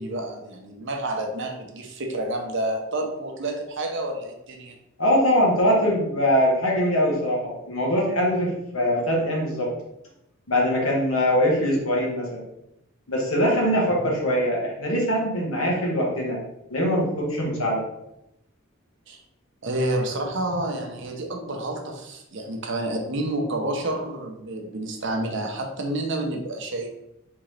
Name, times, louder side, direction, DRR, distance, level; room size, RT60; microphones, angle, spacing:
voice 1, 0.0-4.7 19.1-19.2 19.6-26.9, right 1 dB, 60° right, 3 dB, 0.7 m, -29 dB
voice 2, 5.0-9.7 10.5-12.4 13.1-16.4 16.7-17.8, equal, 75° left, -2 dB, 1.4 m, -22 dB
3.8 x 3.4 x 3.2 m, 0.85 s
head